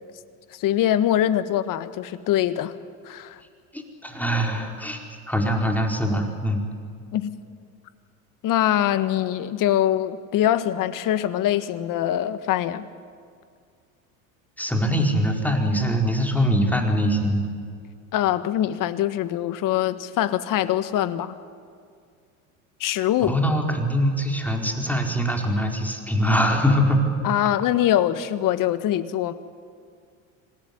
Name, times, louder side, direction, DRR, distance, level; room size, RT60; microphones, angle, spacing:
voice 1, 0.5-2.7 3.0-3.4 7.1-7.3 8.4-12.8 18.1-21.3 22.8-23.4 27.2-29.3, left 12 dB, 45° left, 12 dB, 1.6 m, -23 dB
voice 2, 3.7-6.6 14.6-17.5 23.3-27.1, equal, 5° left, 2 dB, 4.6 m, -23 dB
26.0 x 18.0 x 9.8 m, 2.2 s
hypercardioid pair, 85°, 43 cm